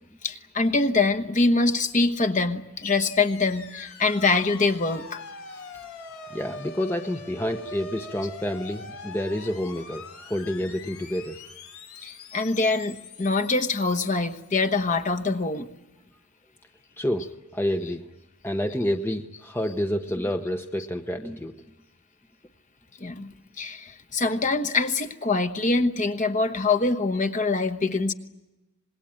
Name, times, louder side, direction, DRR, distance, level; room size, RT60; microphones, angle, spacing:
voice 1, 0.2-5.2 8.2-8.3 9.4-9.5 12.0-15.7 23.0-28.1, left 3 dB, 35° left, 1.1 m, -24 dB
sound 1, 2.8-15.1, left 4 dB, 75° left, 3.3 m, -43 dB
voice 2, 6.3-11.4 17.0-17.3 17.5-18.0 18.4-21.5, equal, 10° left, 0.8 m, -28 dB
26.5 x 21.0 x 8.8 m
head